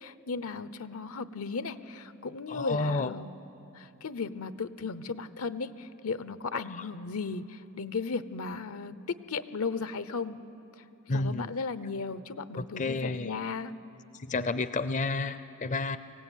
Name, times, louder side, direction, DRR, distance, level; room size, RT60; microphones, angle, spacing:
voice 1, 0.0-3.3 3.7-8.9 9.3-10.4 10.8-10.9 11.1-13.7, left 4 dB, 85° left, 14 dB, 0.8 m, -35 dB
voice 2, 2.5-3.1 6.5-6.6 11.1-11.5 12.6-13.3 14.1-16.0, left 3 dB, 35° left, 13 dB, 0.5 m, -31 dB
24.0 x 16.5 x 9.2 m, 2.8 s
head